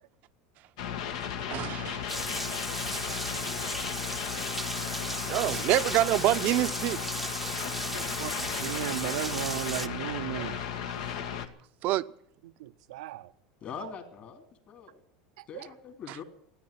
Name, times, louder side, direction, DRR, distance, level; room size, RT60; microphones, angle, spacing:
sound 1, 0.8-11.5, left 8 dB, 75° left, 1.7 m, -35 dB
voice 1, 1.5-2.0 2.9-3.2 5.3-7.1 11.8-12.0 16.1-16.2, right 15 dB, 50° right, 14 dB, 0.7 m, -27 dB
Rain, 2.1-9.9, right 1 dB, ahead, 0.8 m, -36 dB
voice 2, 3.0-4.1 7.9-10.6 12.4-13.3 13.8-13.9 15.4-15.7, right 14 dB, 80° right, 11 dB, 0.7 m, -37 dB
voice 3, 13.6-15.0 15.5-16.2, left 7 dB, 40° left, 6 dB, 3.0 m, -43 dB
14.0 x 9.8 x 9.9 m, 0.65 s
supercardioid pair, 125°, 3 cm